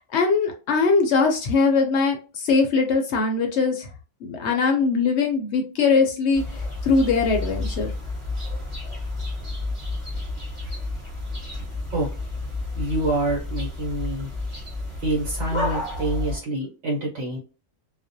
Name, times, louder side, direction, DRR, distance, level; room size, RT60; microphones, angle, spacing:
voice 1, 0.1-3.9 4.2-7.9, left 4 dB, 65° left, 3 dB, 0.8 m, -21 dB
sound 1, 6.3-16.4, left 2 dB, 25° right, 1.1 m, -31 dB
voice 2, 12.8-14.3 15.0-17.4, right 2 dB, 70° right, -3 dB, 1.1 m, -26 dB
2.4 x 2.1 x 2.5 m, 0.33 s
omnidirectional pair, 1.4 m